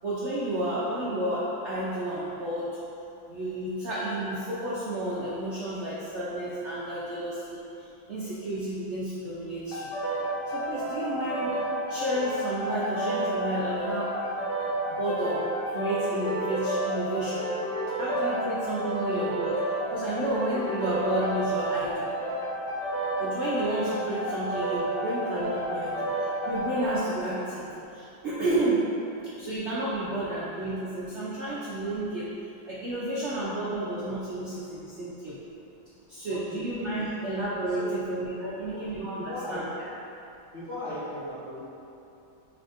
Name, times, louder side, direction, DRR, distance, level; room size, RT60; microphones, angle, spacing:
voice 1, 0.0-2.8 3.3-9.9 10.5-11.6 11.9-14.1 14.9-17.4 17.9-22.1 23.2-28.9 29.3-35.4 36.1-38.3 38.6-39.6, right 1 dB, 80° right, -8 dB, 0.6 m, -31 dB
sound 1, 9.7-27.1, right 1 dB, 75° left, 1.5 m, -30 dB
voice 2, 36.3-36.6 37.7-37.9 38.4-38.7 39.1-39.6 40.5-41.6, left 1 dB, 45° left, -13 dB, 1.2 m, -37 dB
6.0 x 3.3 x 2.5 m, 2.9 s
omnidirectional pair, 2.0 m